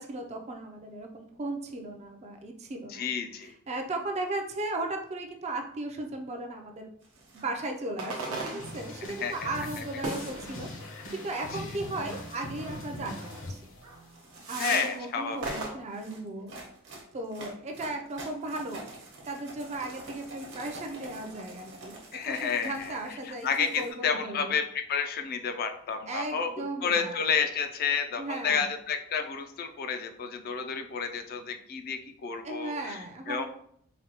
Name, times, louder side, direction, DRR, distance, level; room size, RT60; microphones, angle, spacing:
voice 1, 0.0-3.1 3.7-6.9 7.3-10.7 11.1-13.6 14.5-16.5 17.1-18.8 19.3-21.9 22.3-24.5 26.1-27.2 28.2-28.7 32.4-33.5, right 2 dB, 30° right, 4 dB, 0.4 m, -36 dB
voice 2, 2.9-3.5 8.5-8.6 9.2-9.3 10.8-11.1 11.5-11.6 14.6-15.6 22.1-33.0 33.3-33.5, left 6 dB, 45° left, 7 dB, 0.3 m, -31 dB
sound 1, 7.0-7.5 8.4-9.0 9.6-10.4 11.1-11.5 12.0-12.5 13.0-13.4 13.9-14.5 15.2-23.9, right 2 dB, 55° right, 1.0 m, -47 dB
sound 2, 7.4-7.6 8.0-9.2 10.0-10.9 12.1-12.2 12.6-12.7 13.2-13.4 13.8-14.0 14.3-15.1 15.4-15.7, right 3 dB, 85° right, 0.8 m, -37 dB
sound 3, 8.6-14.6, left 1 dB, 65° left, 0.9 m, -42 dB
4.1 x 2.2 x 2.8 m, 0.66 s
head